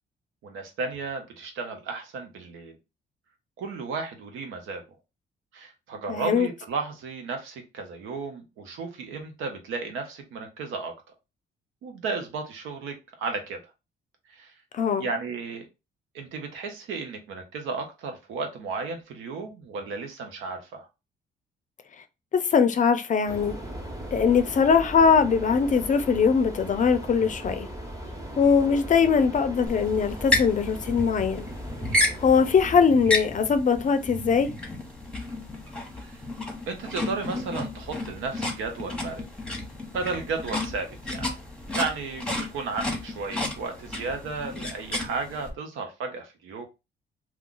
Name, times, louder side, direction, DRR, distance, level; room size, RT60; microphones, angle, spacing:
voice 1, 0.4-2.8 3.6-4.8 5.5-10.9 11.8-13.6 14.3-14.5 15.0-15.7 16.1-20.9 32.0-32.4 36.0-36.2 36.7-39.3 39.9-41.3 41.7-46.6, right 4 dB, 90° right, 0.9 m, -34 dB
voice 2, 6.1-6.5 14.7-15.0 22.3-23.6 24.1-27.7 28.4-31.4 32.2-34.5, left 6 dB, 40° left, 0.5 m, -21 dB
sound 1, 23.3-32.8, right 1 dB, 15° right, 1.0 m, -38 dB
sound 2, 29.7-45.5, left 2 dB, 5° left, 1.0 m, -32 dB
2.3 x 2.3 x 3.8 m
cardioid pair, 90°, 20 cm